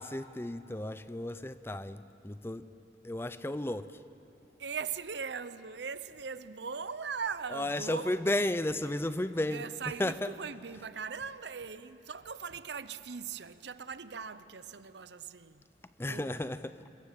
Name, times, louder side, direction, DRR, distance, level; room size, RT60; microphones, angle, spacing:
voice 1, 0.0-2.7 3.0-3.9 7.5-9.6 10.0-10.3 16.0-16.7, left 1 dB, 15° left, 0.5 m, -33 dB
voice 2, 4.6-8.4 9.5-15.6 16.0-16.4, right 6 dB, 80° right, 0.8 m, -40 dB
28.0 x 21.5 x 7.6 m
head